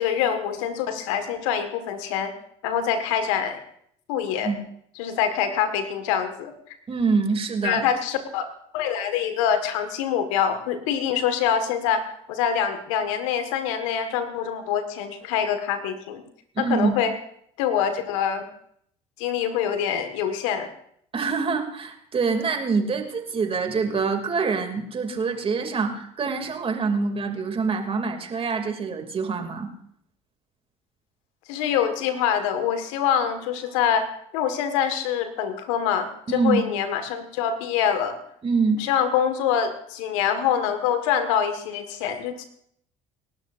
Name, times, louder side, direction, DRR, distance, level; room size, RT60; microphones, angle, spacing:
voice 1, 0.0-2.3 2.6-3.6 4.1-4.5 5.0-6.5 7.6-8.5 8.7-12.0 12.3-16.2 16.6-17.1 17.6-18.5 19.2-20.7 31.5-34.1 34.3-38.2 38.8-42.4, left 8 dB, 75° left, 8 dB, 1.7 m, -25 dB
voice 2, 6.9-7.8 16.5-17.0 21.1-29.7 36.3-36.6 38.4-38.9, right 4 dB, 35° right, 4 dB, 2.7 m, -25 dB
29.0 x 13.0 x 2.6 m, 0.68 s
hypercardioid pair, 65°, 16 cm